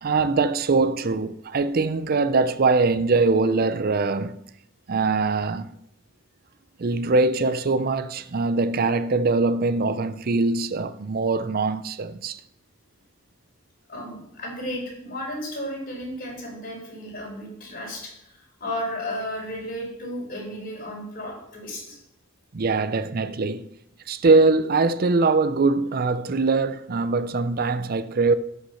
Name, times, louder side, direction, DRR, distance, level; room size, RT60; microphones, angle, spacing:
voice 1, 0.0-4.4 4.9-5.7 6.8-12.4 22.5-23.7 24.1-28.3, right 3 dB, 50° right, 0.5 m, -22 dB
voice 2, 13.9-22.0, equal, 45° left, 4.5 m, -34 dB
13.0 x 5.9 x 5.7 m
head